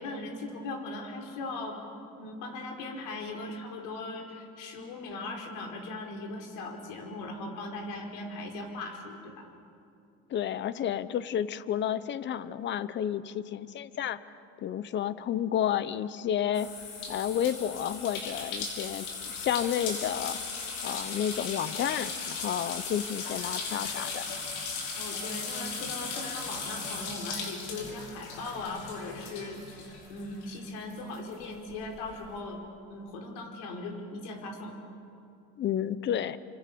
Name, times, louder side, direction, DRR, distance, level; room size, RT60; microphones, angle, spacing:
voice 1, 0.0-1.8 2.2-9.5 24.9-32.6 32.9-34.7, left 2 dB, 65° left, 3 dB, 5.0 m, -39 dB
voice 2, 10.3-14.2 14.6-16.7 17.1-20.4 20.8-24.2 35.6-36.4, left 10 dB, 35° left, 15 dB, 1.0 m, -31 dB
sound 1, 16.5-30.6 30.9-32.1, left 4 dB, 85° left, 6.0 m, -37 dB
30.0 x 26.5 x 6.9 m, 2.5 s
cardioid pair, 135°, 33 cm